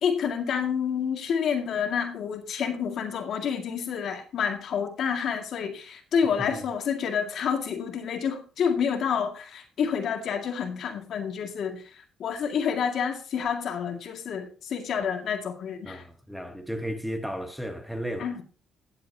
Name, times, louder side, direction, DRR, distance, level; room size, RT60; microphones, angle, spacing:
voice 1, 0.0-16.0 18.2-18.4, left 7 dB, 65° left, 2.1 m, -29 dB
voice 2, 15.8-18.3, equal, ahead, 1.4 m, -34 dB
17.0 x 7.7 x 2.8 m
cardioid pair, 95°, 0 cm